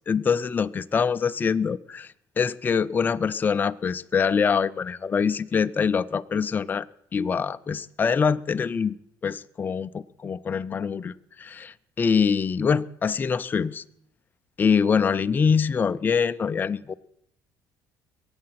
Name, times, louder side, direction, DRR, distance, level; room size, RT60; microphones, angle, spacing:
voice 1, 0.1-6.9 7.1-9.0 9.2-13.8 14.6-16.9, left 6 dB, 25° left, 12 dB, 0.4 m, -24 dB
22.5 x 8.7 x 5.8 m, 0.75 s
cardioid pair, 115°, 7 cm